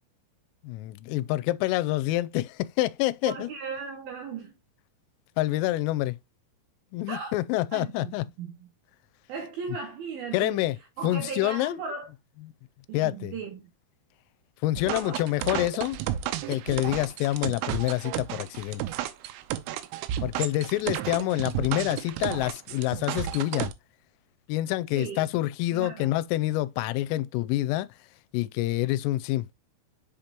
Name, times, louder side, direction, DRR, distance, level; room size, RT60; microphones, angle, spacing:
voice 1, 0.6-3.5 5.4-6.2 6.9-8.3 10.3-10.8 11.0-11.8 12.4-12.5 12.9-13.3 14.6-16.0 16.5-18.8 20.2-23.7 24.5-27.9 28.3-29.5, left 16 dB, 85° left, 3.2 m, -27 dB
voice 2, 3.3-4.5 7.1-7.3 7.7-8.1 8.4-8.5 9.3-10.6 11.0-12.1 12.9-13.6 14.9-15.2 21.1-21.3 24.9-25.3 25.7-26.1, right 5 dB, 70° right, 2.4 m, -36 dB
sound 1, 14.8-23.7, right 12 dB, 85° right, 3.4 m, -32 dB
7.5 x 5.2 x 2.8 m
omnidirectional pair, 5.8 m